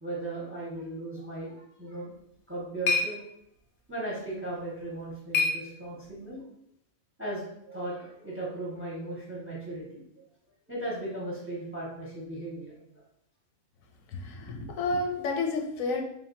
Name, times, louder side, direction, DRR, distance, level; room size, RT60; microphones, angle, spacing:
voice 1, 0.0-2.1 2.5-3.2 3.9-6.4 7.2-10.0 10.7-12.7, right 1 dB, 10° right, -4 dB, 0.8 m, -37 dB
sound 1, 2.1-6.3, left 4 dB, 50° left, 0.5 m, -33 dB
voice 2, 14.1-16.0, left 3 dB, 85° left, 2 dB, 1.0 m, -30 dB
3.5 x 2.5 x 3.8 m, 0.75 s
omnidirectional pair, 1.4 m